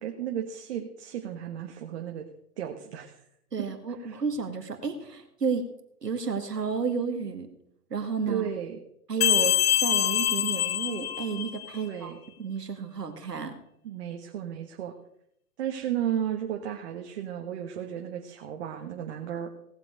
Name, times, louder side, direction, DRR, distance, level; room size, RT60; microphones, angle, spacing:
voice 1, 0.0-2.3 2.6-3.2 4.0-4.2 8.3-8.8 11.7-12.2 13.8-14.9 15.6-19.5, right 10 dB, 45° right, 2 dB, 1.5 m, -34 dB
voice 2, 3.5-5.6 6.0-7.5 7.9-8.5 9.1-12.1 12.4-13.5, right 5 dB, 80° right, 6 dB, 2.1 m, -31 dB
sound 1, 9.2-11.8, left 11 dB, 40° left, 0.6 m, -25 dB
18.0 x 7.7 x 5.2 m, 0.75 s
figure-of-eight pair, 125°, 47 cm